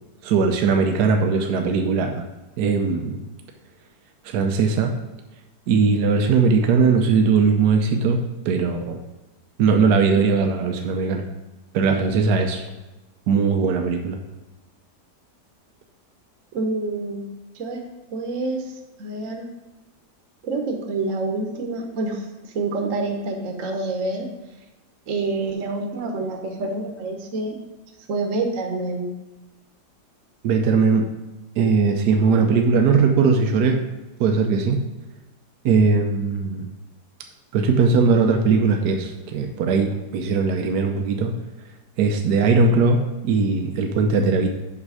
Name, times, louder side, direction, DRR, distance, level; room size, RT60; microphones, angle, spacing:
voice 1, 0.2-2.3 2.6-3.2 4.2-4.9 5.7-8.2 8.4-9.0 9.6-11.2 11.7-12.6 13.3-14.2 30.4-31.1 31.6-33.8 34.2-34.8 35.6-36.7 37.5-41.3 42.0-44.5, right 4 dB, 75° right, 4 dB, 1.3 m, -19 dB
voice 2, 16.5-17.3 17.5-17.8 18.1-18.7 19.0-19.5 20.4-24.3 25.1-27.6 28.1-29.1, right 3 dB, 55° right, 3 dB, 1.3 m, -27 dB
7.4 x 5.7 x 4.8 m, 1.1 s
omnidirectional pair, 1.8 m